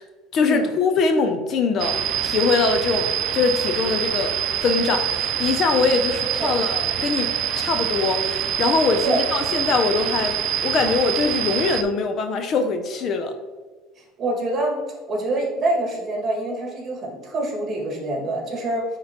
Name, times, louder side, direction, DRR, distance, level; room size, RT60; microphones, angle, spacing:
voice 1, 0.3-4.3 4.6-13.3, left 4 dB, 40° left, 7 dB, 0.5 m, -22 dB
sound 1, 1.8-11.8, right 10 dB, 55° right, 0.4 m, -25 dB
voice 2, 14.2-14.8 15.1-18.8, right 2 dB, 30° right, -1 dB, 1.9 m, -25 dB
9.9 x 3.7 x 2.9 m, 1.4 s
cardioid pair, 140°, 0 cm